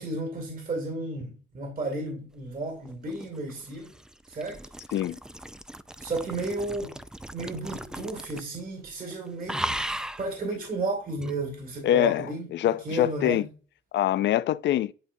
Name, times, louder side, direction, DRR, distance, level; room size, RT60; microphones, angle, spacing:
voice 1, 0.0-3.9 4.3-4.6 6.0-7.0 7.3-9.8 10.2-12.5 12.8-13.5, right 2 dB, 45° right, 2.4 m, -33 dB
sound 1, 2.8-8.6 8.8-9.1 9.5-10.3 11.2-11.3, right 1 dB, 5° right, 0.4 m, -37 dB
voice 2, 11.8-13.5 13.9-14.9, left 12 dB, 65° left, 0.4 m, -24 dB
11.0 x 3.9 x 2.7 m
cardioid pair, 90°, 20 cm